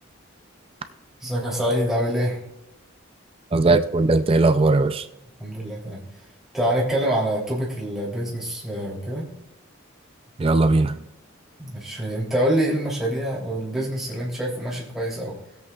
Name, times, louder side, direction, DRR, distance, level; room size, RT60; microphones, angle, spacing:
voice 1, 1.2-2.4 5.4-6.0 6.5-9.3 11.6-15.3, equal, ahead, -6 dB, 3.1 m, -25 dB
voice 2, 3.5-5.1 10.4-10.9, right 3 dB, 25° right, 9 dB, 0.4 m, -18 dB
19.5 x 8.1 x 2.4 m, 0.92 s
head